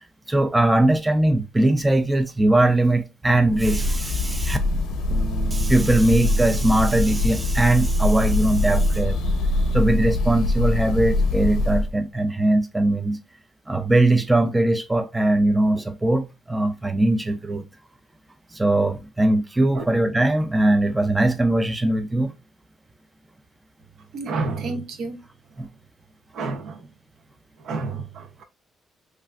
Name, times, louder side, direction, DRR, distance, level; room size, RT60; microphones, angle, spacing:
voice 1, 0.3-4.6 5.5-9.2 9.7-13.2 13.7-17.6 18.5-22.3 25.6-25.7, right 1 dB, 15° right, 0.4 m, -20 dB
Breathing / Bird, 3.4-12.0, left 1 dB, 80° left, 0.6 m, -23 dB
Bass guitar, 5.1-11.4, right 4 dB, 10° left, 0.8 m, -40 dB
voice 2, 24.1-25.2 26.3-26.8 27.6-28.4, right 3 dB, 70° right, 0.6 m, -29 dB
3.1 x 2.4 x 2.3 m
cardioid pair, 90°, 0 cm